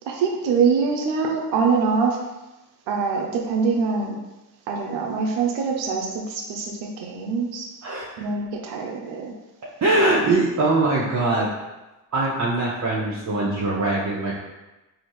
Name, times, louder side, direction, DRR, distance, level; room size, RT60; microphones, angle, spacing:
voice 1, 0.1-2.2 2.9-4.1 4.7-7.7 8.2-9.3, right 5 dB, 85° right, 1 dB, 0.6 m, -24 dB
voice 2, 9.8-11.5 12.1-14.4, right 2 dB, 40° right, -5 dB, 0.8 m, -22 dB
4.1 x 2.8 x 3.1 m, 1.1 s
supercardioid pair, 55°, 43 cm